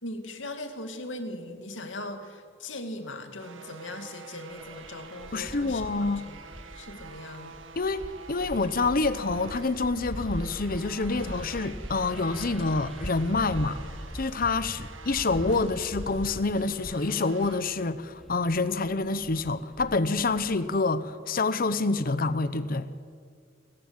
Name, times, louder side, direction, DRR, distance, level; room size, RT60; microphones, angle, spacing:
voice 1, 0.0-6.4 6.7-7.6, left 1 dB, 75° left, 2.5 m, -39 dB
sound 1, 3.4-17.6, right 5 dB, 85° right, 1.8 m, -47 dB
sound 2, 4.5-20.8, equal, ahead, 0.5 m, -42 dB
voice 2, 5.3-6.3 7.8-13.8 14.1-22.9, left 3 dB, 50° left, 0.9 m, -27 dB
29.5 x 15.0 x 8.9 m
head